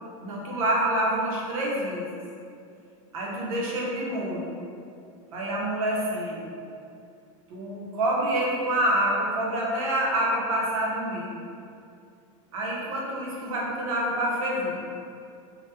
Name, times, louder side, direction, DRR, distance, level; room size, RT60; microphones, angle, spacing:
voice 1, 0.2-2.2 3.1-4.5 5.3-6.6 7.5-11.5 12.5-14.8, right 1 dB, 85° right, -4 dB, 0.7 m, -27 dB
2.7 x 2.1 x 2.2 m, 2.4 s
supercardioid pair, 170°, 17 cm